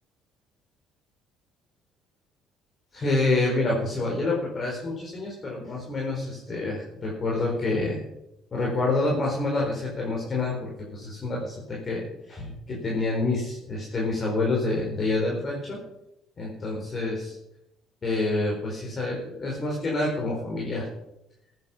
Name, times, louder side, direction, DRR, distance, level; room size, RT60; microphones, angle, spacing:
voice 1, 2.9-8.0 8.5-15.8 16.4-17.3 18.0-20.9, left 2 dB, 40° left, -3 dB, 4.6 m, -27 dB
14.5 x 9.6 x 5.7 m, 0.85 s
hypercardioid pair, 65°, 0 cm